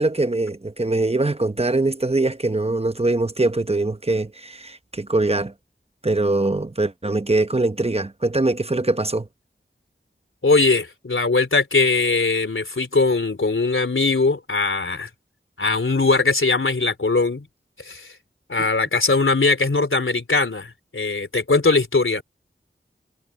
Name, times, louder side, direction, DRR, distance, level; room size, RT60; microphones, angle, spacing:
voice 1, 0.0-5.5 6.0-9.3 18.6-18.7, right 2 dB, 30° right, 0.9 m, -22 dB
voice 2, 10.4-15.1 15.6-17.5 17.8-18.1 18.5-22.2, left 3 dB, 80° left, 3.5 m, -20 dB
wide cardioid pair, 45°, 20 cm